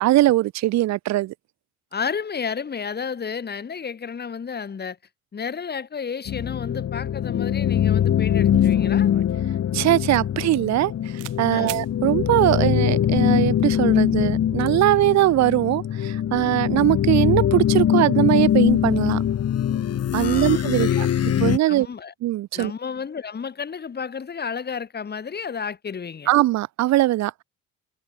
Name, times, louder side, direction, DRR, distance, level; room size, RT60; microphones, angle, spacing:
voice 1, 0.0-1.3 9.7-19.2 20.1-21.1 21.4-21.9 22.2-22.7 26.3-27.4, right 15 dB, 60° right, 0.7 m, -21 dB
voice 2, 1.9-5.0 5.3-9.1 11.5-11.8 20.2-21.1 21.7-22.1 22.5-26.3, left 6 dB, 30° left, 2.8 m, -32 dB
sound 1, 6.3-21.6, left 10 dB, 50° left, 2.6 m, -22 dB
sound 2, 8.5-10.9 11.2-11.4 11.7-11.9, right 21 dB, 85° right, 3.4 m, -40 dB
cardioid pair, 95°, 31 cm